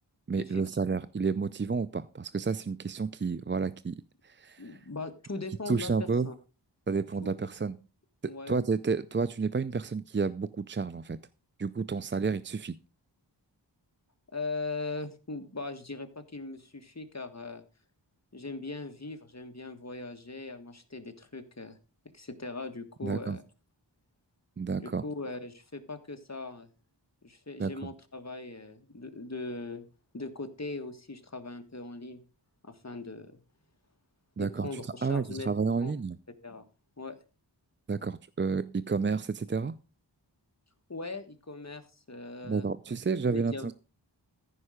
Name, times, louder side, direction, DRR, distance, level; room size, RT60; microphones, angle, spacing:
voice 1, 0.3-4.8 5.7-6.3 6.9-7.8 8.2-11.2 11.6-12.8 23.0-23.4 24.6-25.0 27.6-27.9 34.4-36.2 37.9-39.7 42.5-43.7, right 4 dB, 25° right, 0.4 m, -31 dB
voice 2, 4.6-6.3 7.2-7.3 8.2-8.6 14.3-17.6 18.3-21.8 22.1-23.4 24.8-26.7 27.2-29.9 30.1-32.2 32.6-33.4 34.4-35.5 35.8-35.9 36.4-36.6 37.0-37.2 40.9-42.7 43.3-43.7, left 3 dB, 35° left, 1.6 m, -40 dB
14.5 x 5.5 x 4.9 m
wide cardioid pair, 45°, 43 cm